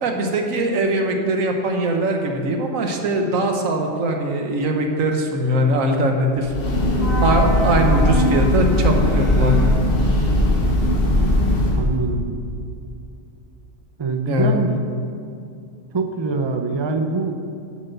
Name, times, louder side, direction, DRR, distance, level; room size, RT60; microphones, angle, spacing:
voice 1, 0.0-6.5 7.2-9.6 14.3-14.6, right 1 dB, 85° right, 3 dB, 1.5 m, -21 dB
Breathing / Train, 6.4-11.9, left 1 dB, 50° left, 1.2 m, -18 dB
voice 2, 11.0-12.3 14.0-14.7 15.9-17.3, right 4 dB, 30° right, 5 dB, 0.5 m, -24 dB
7.8 x 7.6 x 7.0 m, 2.5 s
omnidirectional pair, 1.3 m